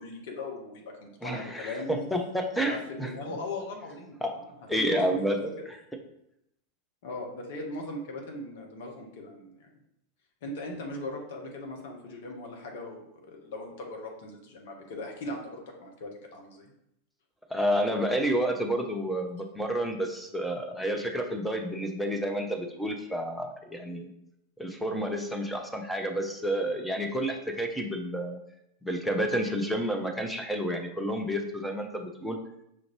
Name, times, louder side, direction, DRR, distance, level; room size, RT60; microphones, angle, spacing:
voice 1, 0.0-2.1 2.5-4.2 4.7-5.5 7.0-9.7 10.4-16.7, left 2 dB, 55° left, 1 dB, 0.8 m, -39 dB
voice 2, 1.2-3.1 4.2-4.3 4.7-5.4 5.7-5.8 17.5-24.1 24.6-28.4 28.8-32.4, equal, ahead, 3 dB, 0.5 m, -30 dB
5.8 x 2.5 x 3.0 m, 0.78 s
figure-of-eight pair, 90°, 0 cm